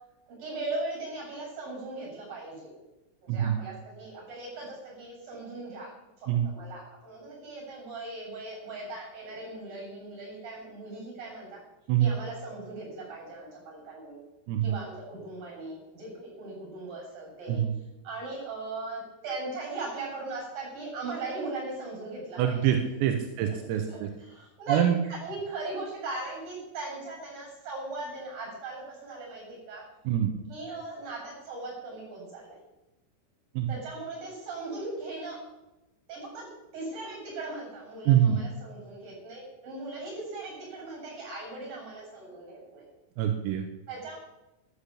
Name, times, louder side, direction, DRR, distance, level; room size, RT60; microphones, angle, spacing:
voice 1, 0.4-2.7 3.2-5.9 6.2-11.6 12.0-14.2 14.6-17.6 18.0-22.8 23.5-23.6 23.9-29.8 30.5-32.6 33.7-35.4 36.1-36.5 36.7-42.9 43.9-44.2, right 2 dB, 45° right, -2 dB, 9.5 m, -39 dB
voice 2, 22.4-24.1 24.7-25.0 30.1-30.3 33.6-33.7 38.1-38.4 43.2-43.7, right 10 dB, 85° right, 5 dB, 3.9 m, -25 dB
14.0 x 12.0 x 8.6 m, 0.97 s
omnidirectional pair, 5.9 m